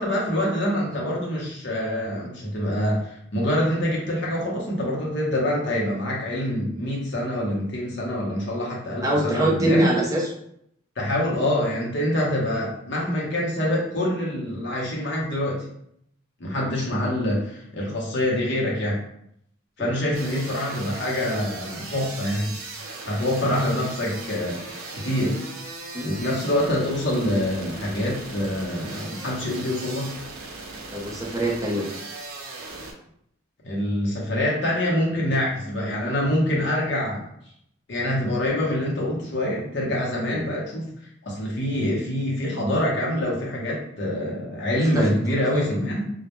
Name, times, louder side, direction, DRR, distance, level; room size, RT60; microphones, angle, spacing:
voice 1, 0.0-9.8 11.0-15.6 16.4-19.0 19.8-22.6 23.1-24.6 24.9-25.4 26.0-30.1 33.6-37.3 37.9-40.9 41.2-46.1, left 1 dB, 55° left, -3 dB, 0.7 m, -25 dB
voice 2, 9.0-10.3 16.6-16.7 19.8-19.9 25.9-26.2 30.9-31.9 40.3-40.4 44.9-45.0 45.5-45.7, right 1 dB, 15° right, -4 dB, 0.5 m, -24 dB
sound 1, 20.1-32.9, right 3 dB, 85° right, 0.5 m, -38 dB
2.2 x 2.1 x 2.9 m, 0.72 s
head